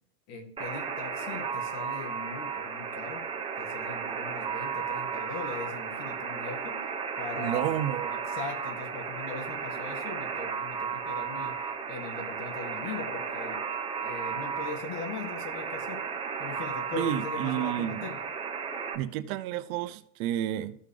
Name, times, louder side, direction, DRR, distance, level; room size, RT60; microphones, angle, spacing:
voice 1, 0.3-3.3 3.6-6.9 7.2-7.8 8.1-18.2, left 5 dB, 60° left, 2.0 m, -40 dB
Alarm, 0.6-19.0, right 6 dB, 10° right, 0.7 m, -34 dB
voice 2, 7.4-8.1 16.9-18.0 18.9-20.8, right 12 dB, 70° right, 0.8 m, -31 dB
14.0 x 5.7 x 3.4 m
supercardioid pair, 155°, 44 cm